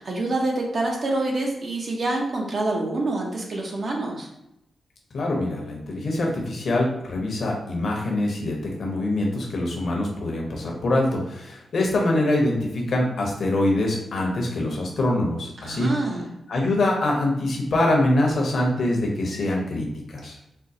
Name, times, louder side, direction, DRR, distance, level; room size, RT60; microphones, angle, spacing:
voice 1, 0.0-4.3 15.6-16.3, right 2 dB, 55° right, 0 dB, 0.8 m, -26 dB
voice 2, 5.1-15.9 16.5-20.3, left 1 dB, 70° left, -1 dB, 0.9 m, -24 dB
4.4 x 2.1 x 2.7 m, 0.85 s
cardioid pair, 65°, 0 cm